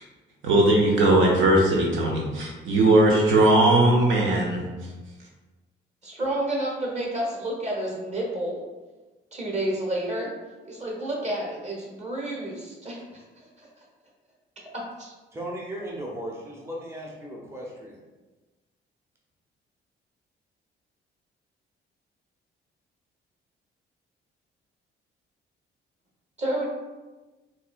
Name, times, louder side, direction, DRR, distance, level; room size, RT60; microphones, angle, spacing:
voice 1, 0.4-4.6, right 1 dB, 75° right, -2 dB, 0.7 m, -19 dB
voice 2, 6.0-8.6 9.3-10.3 10.6-13.2 13.6-13.7 14.7-15.1 26.4-26.7, right 1 dB, 35° right, -3 dB, 1.2 m, -30 dB
voice 3, 15.3-18.0, right 1 dB, 15° right, -3 dB, 0.7 m, -36 dB
4.0 x 2.4 x 2.4 m, 1.2 s
cardioid pair, 90°, 20 cm